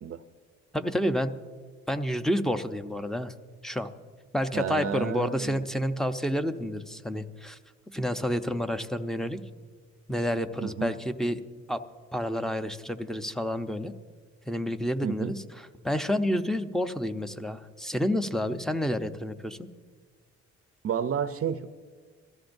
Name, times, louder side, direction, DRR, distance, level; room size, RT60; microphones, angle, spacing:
voice 1, 0.7-1.3 1.9-3.3 3.6-3.9 4.3-7.6 7.9-9.4 10.1-11.4 11.7-11.8 12.1-13.9 14.5-19.7, equal, ahead, 9 dB, 0.7 m, -29 dB
voice 2, 4.5-5.6 10.6-10.9 15.0-15.3 20.8-21.7, right 8 dB, 50° right, 10 dB, 0.6 m, -31 dB
22.0 x 14.5 x 2.6 m, 1.5 s
cardioid pair, 90°, 30 cm